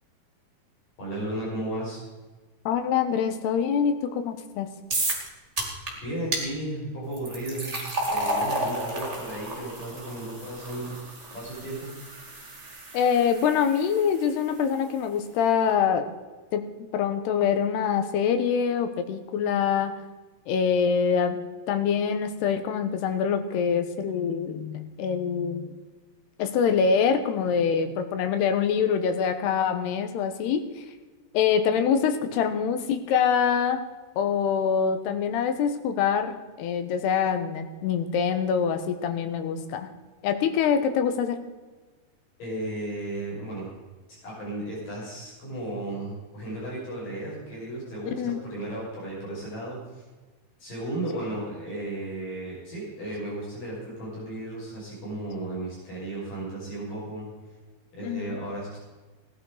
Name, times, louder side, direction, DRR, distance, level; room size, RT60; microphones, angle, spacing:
voice 1, 1.0-2.0 6.0-7.8 8.1-10.9 11.3-11.9 42.4-43.7 44.2-50.0 50.6-57.2 57.9-58.8, right 1 dB, 55° left, -6 dB, 7.4 m, -34 dB
voice 2, 2.7-4.7 12.9-16.1 16.5-19.9 20.5-21.4 21.7-25.7 26.4-30.9 31.3-33.8 34.2-39.9 40.2-41.4 48.2-48.4 58.0-58.4, left 7 dB, 85° left, 9 dB, 3.2 m, -25 dB
sound 1, 4.9-5.3 5.6-5.9 6.3-6.4 7.1-14.3, right 1 dB, 20° right, 2.6 m, -32 dB
17.5 x 11.0 x 4.9 m, 1.3 s
omnidirectional pair, 4.6 m